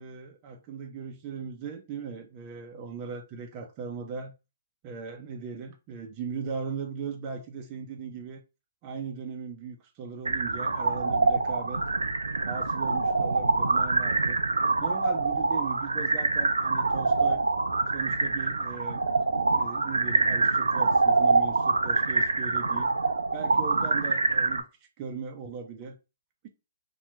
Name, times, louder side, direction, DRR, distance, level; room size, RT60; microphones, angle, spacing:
voice 1, 0.0-4.3 4.8-8.4 8.8-11.8 12.4-14.4 14.8-17.4 17.9-19.0 19.5-22.9 23.3-24.7 25.0-26.0, right 6 dB, 35° right, 0.5 m, -38 dB
sound 1, 10.2-24.6, right 3 dB, 90° right, 0.3 m, -25 dB
2.9 x 2.2 x 3.0 m
hypercardioid pair, 130°, 0 cm